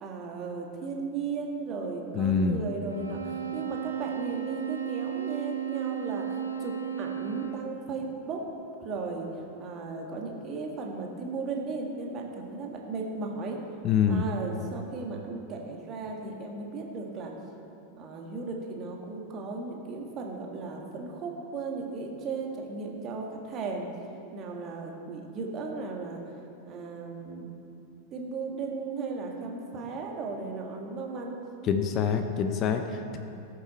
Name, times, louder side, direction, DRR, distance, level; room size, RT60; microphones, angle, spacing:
voice 1, 0.0-8.5 8.8-9.3 9.6-13.6 14.0-17.3 18.0-23.9 24.3-26.2 26.7-27.6 28.1-31.4 32.9-33.2, right 4 dB, 30° right, 0 dB, 1.9 m, -36 dB
voice 2, 2.1-2.7 13.8-14.2 31.6-33.2, left 7 dB, 35° left, 7 dB, 0.7 m, -26 dB
sound 1, 2.9-7.8, right 9 dB, 85° right, 1.3 m, -34 dB
19.0 x 7.4 x 4.2 m, 2.7 s
figure-of-eight pair, 90°, 0 cm